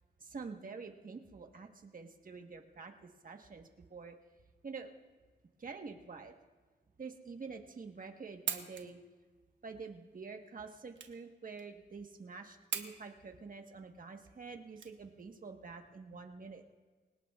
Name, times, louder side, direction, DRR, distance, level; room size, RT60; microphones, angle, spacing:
voice 1, 0.2-4.2 4.6-4.9 5.6-6.3 7.0-9.0 9.6-16.6, right 4 dB, 45° right, 4 dB, 1.4 m, -47 dB
sound 1, 8.1-15.5, right 7 dB, 90° right, 1.2 m, -44 dB
25.0 x 17.5 x 2.4 m, 1.4 s
cardioid pair, 90°, 19 cm